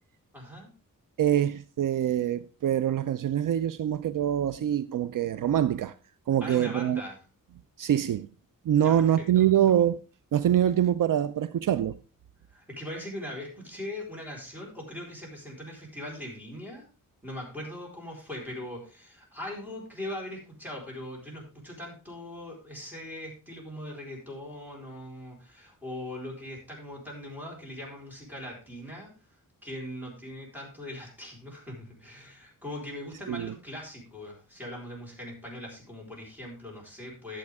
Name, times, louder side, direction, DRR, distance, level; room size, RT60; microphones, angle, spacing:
voice 1, 0.3-0.7 6.4-7.2 8.8-9.5 12.5-16.9 17.2-29.1 29.6-37.4, left 1 dB, 5° right, 4.2 m, -40 dB
voice 2, 1.2-5.9 6.3-7.0 7.8-8.3 8.7-10.0 10.3-12.0 33.3-33.5, right 10 dB, 65° right, 0.5 m, -24 dB
12.0 x 7.7 x 3.5 m
wide cardioid pair, 120°, 34 cm